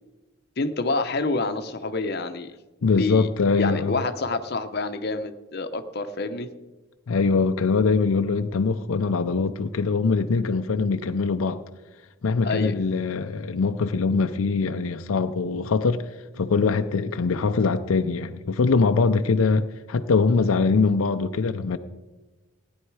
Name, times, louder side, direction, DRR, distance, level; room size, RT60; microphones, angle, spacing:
voice 1, 0.6-2.5 3.0-3.3 3.6-6.5 12.4-12.8, left 3 dB, 50° left, 8 dB, 0.8 m, -27 dB
voice 2, 2.8-4.0 7.1-11.6 12.2-16.1 16.4-21.8, left 4 dB, 80° left, 8 dB, 0.5 m, -22 dB
16.0 x 9.9 x 4.7 m, 1.1 s
head